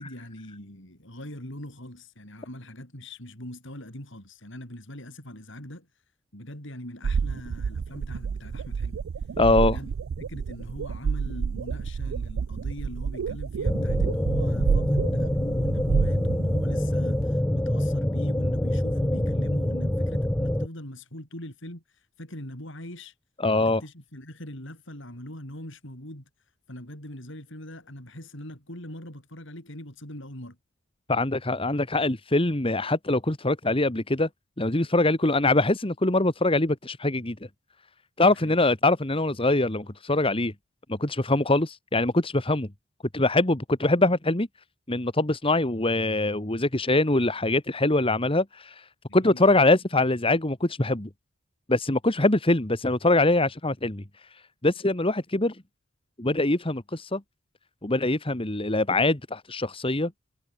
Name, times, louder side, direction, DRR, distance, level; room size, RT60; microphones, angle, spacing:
voice 1, 0.0-5.9 6.3-9.0 9.6-9.9 10.2-23.1 23.6-26.3 26.7-30.6 38.2-38.6 49.2-49.7, left 1 dB, 65° left, 7.9 m, -41 dB
sound 1, 7.0-17.2, right 6 dB, 90° right, 0.4 m, -29 dB
voice 2, 9.4-9.8 23.4-23.8 31.1-34.3 34.6-37.4 38.2-40.5 40.9-42.7 43.1-44.5 44.9-51.1 51.7-55.6 56.2-57.2 57.8-60.1, left 2 dB, 25° left, 1.9 m, -23 dB
sound 2, 13.6-20.7, left 1 dB, 10° left, 0.6 m, -25 dB
head